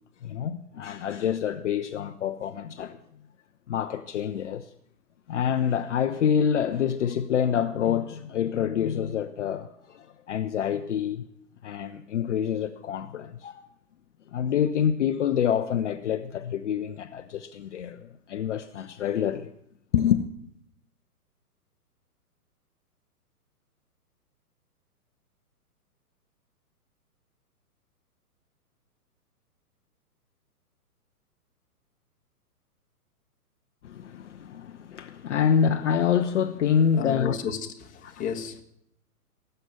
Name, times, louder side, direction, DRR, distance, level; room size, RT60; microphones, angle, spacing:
voice 1, 0.2-3.0 3.7-4.7 5.3-11.2 11.6-13.7 14.3-19.5 19.9-20.2 33.8-37.4 38.0-38.3, left 8 dB, 50° left, 0.9 m, -27 dB
voice 2, 36.9-38.6, left 8 dB, 15° left, 1.5 m, -33 dB
19.0 x 8.0 x 9.4 m
figure-of-eight pair, 120°, 46 cm